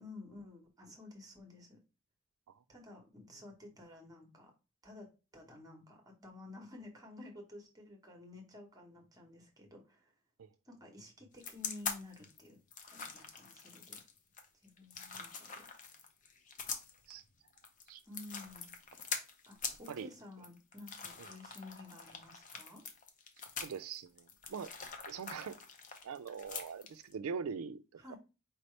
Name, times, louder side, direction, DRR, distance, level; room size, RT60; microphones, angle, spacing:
voice 1, 0.0-1.8 2.7-4.5 4.8-5.1 5.3-10.1 10.6-12.6 12.9-14.0 14.6-15.6 18.1-18.7 19.5-22.8 28.0-28.2, left 2 dB, 15° right, 1.2 m, -52 dB
sound 1, 11.4-27.1, left 5 dB, 40° left, 0.7 m, -44 dB
voice 2, 23.6-24.7 25.1-25.6 26.0-27.8 28.1-28.2, right 6 dB, 80° right, 0.4 m, -42 dB
4.7 x 2.9 x 3.2 m
head